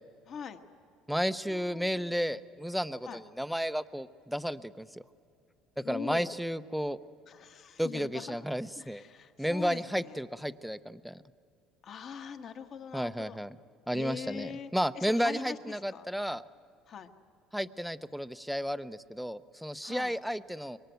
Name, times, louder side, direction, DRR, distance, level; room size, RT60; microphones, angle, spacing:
voice 1, 0.3-0.6 1.5-2.1 3.0-3.2 5.8-6.3 7.3-8.4 8.8-10.2 11.8-13.4 13.9-16.0 16.9-17.1 19.8-20.1, left 7 dB, 40° left, 8 dB, 1.5 m, -42 dB
voice 2, 1.1-5.0 5.9-7.0 7.8-9.0 9.4-11.2 12.9-13.6 13.9-16.4 17.5-20.8, equal, ahead, 13 dB, 0.6 m, -33 dB
26.0 x 23.0 x 9.2 m, 2.5 s
cardioid pair, 130°, 0 cm